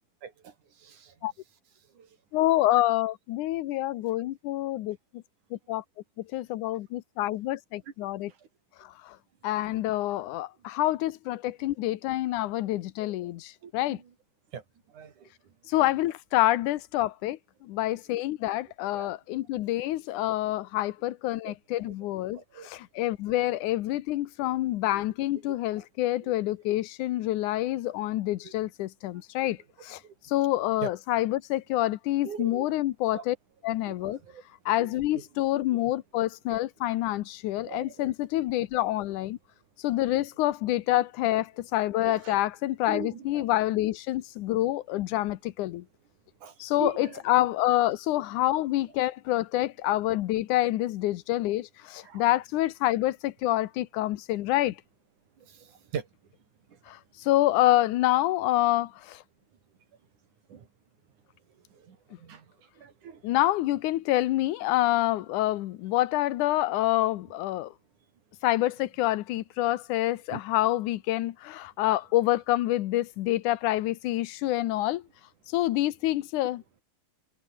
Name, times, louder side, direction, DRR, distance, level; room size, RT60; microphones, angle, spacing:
voice 1, 0.2-0.5 0.8-1.1 2.0-2.1 12.5-12.7 13.6-14.1 14.5-14.6 14.9-15.3 17.8-18.0 18.4-18.5 18.9-19.1 21.5-21.6 21.8-21.9 22.3-22.7 23.3-23.4 25.7-25.8 26.2-26.3 28.4-28.5 30.0-30.1 30.8-30.9 32.2-32.7 33.1-33.2 33.9-34.4 34.8-35.2 37.7-38.4 42.0-42.4 42.9-43.4 46.4-47.2 52.0-52.2 55.5-56.1 57.2-57.3 60.5-60.7 61.7-62.5 62.8-63.2 70.3-70.4, right 7 dB, 80° right, 4.3 m, -41 dB
voice 2, 2.3-5.2 5.5-5.8 6.3-8.3 9.1-9.2 9.4-14.0 15.7-29.6 29.8-30.0 30.3-33.4 33.6-34.2 34.7-39.4 39.8-45.8 46.6-54.8 56.9-57.0 57.3-59.2 63.2-67.7 68.4-75.0 75.5-76.6, left 15 dB, 85° left, 2.4 m, -27 dB
omnidirectional pair, 3.5 m